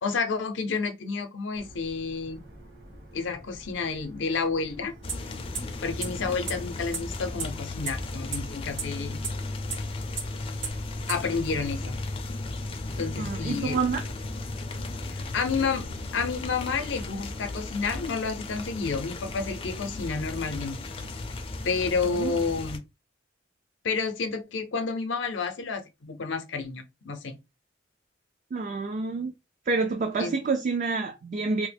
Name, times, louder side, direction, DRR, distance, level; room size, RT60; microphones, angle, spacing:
voice 1, 0.0-2.4 3.1-4.9 5.8-9.2 11.1-12.0 13.0-13.8 15.0-15.9 16.1-20.8 21.6-22.8 23.8-27.4 30.2-30.3, left 4 dB, 80° left, 0.6 m, -30 dB
sound 1, 1.5-18.1, equal, 60° right, 1.7 m, -48 dB
sound 2, 5.0-22.8, left 2 dB, 30° left, 0.4 m, -35 dB
sound 3, 5.1-5.2 5.6-5.7 6.0-6.1 6.5-6.6 6.9-7.0 7.4-7.5 7.9-8.0 8.3-8.4 8.8-8.9 9.2-9.3 9.7-9.8 10.2-10.3 10.6-10.7 11.1-11.2, right 6 dB, 80° right, 0.8 m, -30 dB
voice 2, 13.2-14.0 22.1-22.3 28.5-29.3 29.7-31.7, right 4 dB, 45° right, 0.4 m, -28 dB
3.2 x 2.0 x 3.3 m
head